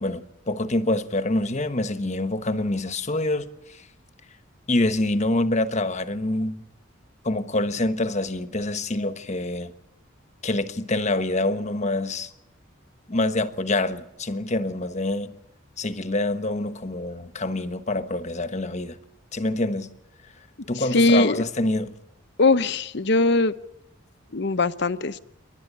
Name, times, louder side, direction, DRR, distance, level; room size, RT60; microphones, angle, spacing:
voice 1, 0.0-3.8 4.7-6.6 7.2-9.7 10.4-12.3 13.1-15.3 15.8-19.0 19.3-19.9 20.7-22.0, left 2 dB, 35° left, 1.2 m, -26 dB
voice 2, 20.9-21.4 22.4-23.5 24.3-25.2, left 2 dB, 60° left, 0.8 m, -20 dB
28.5 x 11.5 x 10.0 m
head